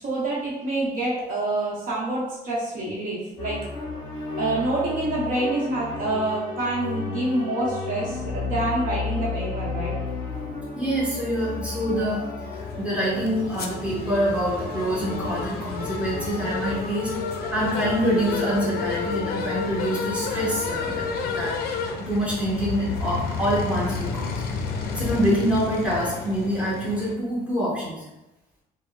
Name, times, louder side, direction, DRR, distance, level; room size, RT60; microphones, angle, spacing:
voice 1, 0.0-3.6 4.4-9.9, right 2 dB, 55° right, -6 dB, 0.8 m, -27 dB
sound 1, 3.4-21.4, left 3 dB, 20° left, 0.8 m, -34 dB
voice 2, 10.7-12.2 12.5-17.1 17.5-21.6 22.0-24.4 25.0-28.0, equal, 5° right, -7 dB, 1.1 m, -26 dB
sound 2, 12.6-27.1, left 5 dB, 65° left, 0.4 m, -31 dB
3.4 x 2.0 x 2.2 m, 0.95 s
cardioid pair, 110°, 17 cm